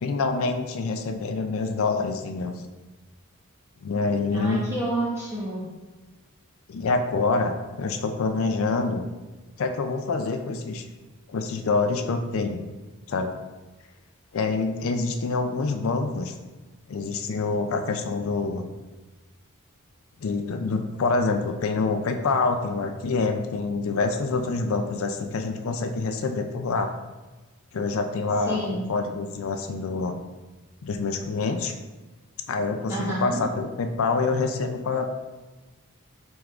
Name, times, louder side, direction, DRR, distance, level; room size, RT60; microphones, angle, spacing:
voice 1, 0.0-2.5 3.8-4.6 6.7-9.0 9.6-10.8 11.3-12.6 13.1-13.3 14.3-16.3 16.9-18.7 20.2-26.9 27.7-30.2 30.8-31.7 32.5-35.0, left 3 dB, 65° left, 5 dB, 0.4 m, -26 dB
voice 2, 4.3-5.7 28.5-28.9 32.9-33.4, right 1 dB, 15° right, -8 dB, 1.4 m, -29 dB
6.2 x 3.5 x 2.4 m, 1.2 s
head